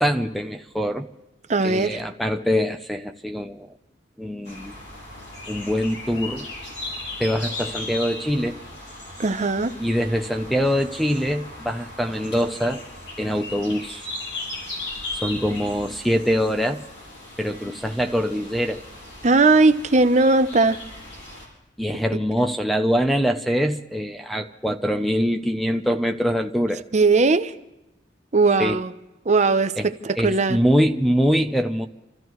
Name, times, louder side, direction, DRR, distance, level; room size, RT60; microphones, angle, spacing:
voice 1, 0.0-1.1 1.6-3.7 4.2-4.7 5.5-6.5 7.2-8.6 9.8-12.8 13.2-14.1 15.2-16.8 17.4-18.8 21.8-26.8 28.6-28.8 29.8-29.9 30.2-31.9, equal, ahead, 0.6 m, -23 dB
voice 2, 1.5-2.0 9.2-9.7 19.2-20.8 26.9-27.5 28.3-28.9 29.3-30.6, right 3 dB, 40° right, 0.6 m, -18 dB
sound 1, 4.5-21.5, left 2 dB, 70° left, 6.7 m, -37 dB
29.5 x 14.0 x 3.1 m
head